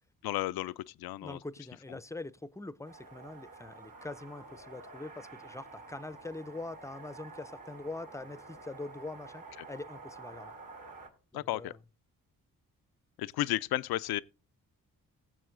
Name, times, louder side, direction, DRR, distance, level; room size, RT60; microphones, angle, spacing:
voice 1, 0.2-1.4 11.3-11.7 13.2-14.2, left 16 dB, 80° left, 0.5 m, -33 dB
voice 2, 1.2-10.5 11.3-11.8, left 2 dB, 10° left, 0.6 m, -43 dB
sound 1, 2.8-11.1, right 3 dB, 65° right, 3.9 m, -50 dB
17.5 x 7.5 x 3.8 m
supercardioid pair, 45°, 37 cm